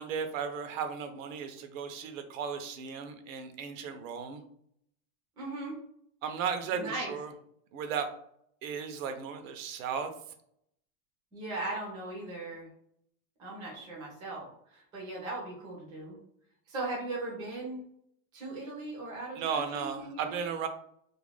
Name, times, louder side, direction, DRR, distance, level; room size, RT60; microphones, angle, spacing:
voice 1, 0.0-4.4 6.2-7.3 7.7-8.1 8.6-10.1 19.4-20.7, right 6 dB, 75° right, 7 dB, 0.6 m, -35 dB
voice 2, 5.4-5.7 6.7-7.2 11.3-12.7 13.4-16.2 16.7-17.9 18.3-20.4, right 2 dB, 10° right, -4 dB, 0.4 m, -38 dB
2.4 x 2.1 x 3.2 m, 0.69 s
supercardioid pair, 170°, 40 cm